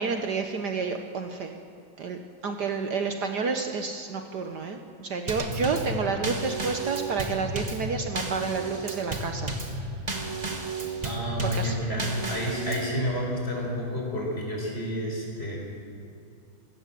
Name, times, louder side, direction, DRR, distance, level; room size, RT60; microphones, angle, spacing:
voice 1, 0.0-1.5 2.0-9.9 11.4-11.8, right 5 dB, 60° right, 5 dB, 1.6 m, -30 dB
Drum kit / Snare drum / Bass drum, 5.3-13.0, right 2 dB, 20° right, 1.5 m, -33 dB
voice 2, 11.0-15.6, equal, 30° left, -1 dB, 5.7 m, -30 dB
25.0 x 17.0 x 7.6 m, 2.4 s
omnidirectional pair, 2.1 m